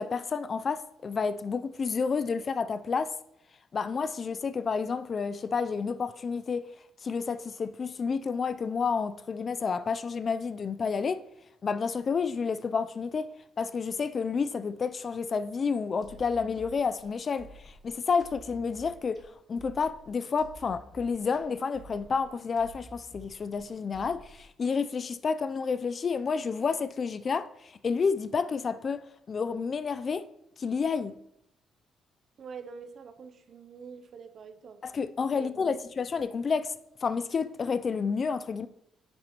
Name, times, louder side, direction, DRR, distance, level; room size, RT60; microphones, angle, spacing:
voice 1, 0.0-3.1 3.7-6.7 7.0-11.2 11.6-13.3 13.6-19.2 19.5-30.2 30.6-31.1 34.8-36.7 37.0-38.7, left 5 dB, 45° left, 0.4 m, -30 dB
sound 1, 16.0-24.7, right 1 dB, 20° left, 2.9 m, -51 dB
voice 2, 32.4-34.8 35.3-35.8, right 6 dB, 55° right, 0.6 m, -45 dB
8.7 x 5.1 x 2.9 m
cardioid pair, 90°, 0 cm